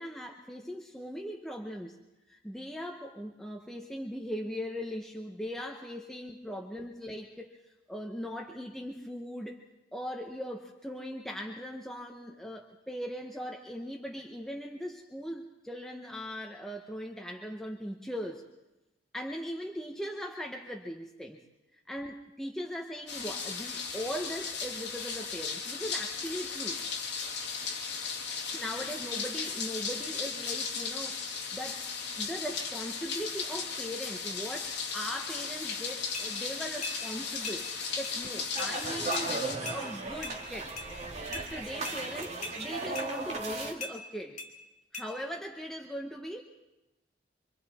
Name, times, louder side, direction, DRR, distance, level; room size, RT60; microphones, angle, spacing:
voice 1, 0.0-2.0 2.3-9.6 9.9-18.4 19.1-21.4 21.7-26.8 28.5-31.9 32.2-40.8 41.3-44.4 44.9-46.4, equal, ahead, 1 dB, 1.0 m, -39 dB
sound 1, 23.1-39.6, left 5 dB, 65° left, 2.4 m, -36 dB
sound 2, 36.1-36.3 36.8-37.0 37.4-37.6 38.0-38.2 38.6-38.7 39.1-39.3 39.7-39.8 40.2-40.4 40.8-40.9 41.3-41.5 41.9-42.0 42.4-42.6 43.0-43.1 43.8-44.0 44.4-44.5 44.9-45.1, left 4 dB, 40° left, 2.7 m, -39 dB
sound 3, 38.6-43.7, right 3 dB, 35° right, 2.3 m, -36 dB
26.0 x 25.5 x 4.3 m, 0.99 s
head